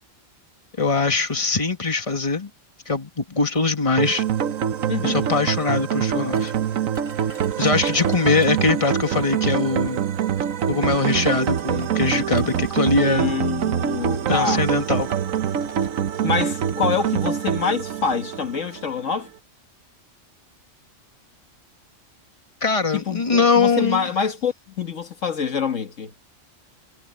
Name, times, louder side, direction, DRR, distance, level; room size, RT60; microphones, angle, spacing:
voice 1, 0.8-2.5 2.9-4.2 5.0-6.5 7.6-10.1 10.7-13.3 14.3-15.1 22.6-24.0, left 4 dB, 25° left, 2.0 m, -22 dB
sound 1, 4.0-19.0, right 9 dB, 90° right, 1.3 m, -25 dB
voice 2, 4.9-5.3 13.0-14.6 16.2-19.3 22.9-26.1, left 6 dB, 70° left, 2.0 m, -26 dB
sound 2, 6.3-9.1 10.2-10.3 10.8-13.0 13.9-14.1 14.4-14.5 14.8-16.8, right 2 dB, 55° right, 8.4 m, -46 dB
omnidirectional pair, 1.3 m